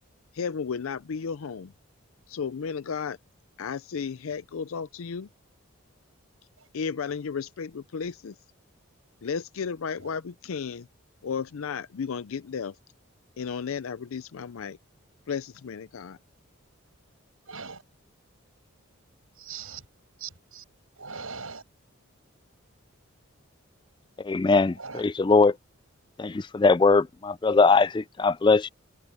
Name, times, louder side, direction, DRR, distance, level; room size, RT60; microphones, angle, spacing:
voice 1, 0.3-1.7 2.3-3.2 3.6-5.3 6.7-8.3 9.2-10.9 11.2-12.7 13.4-14.8 15.3-16.2, left 6 dB, 80° left, 0.5 m, -33 dB
voice 2, 17.4-17.8 19.3-19.9 20.2-20.6 21.0-21.6 24.8-25.0, right 5 dB, 90° right, 6.3 m, -40 dB
voice 3, 24.2-25.6 26.2-28.7, left 4 dB, 20° left, 0.3 m, -21 dB
head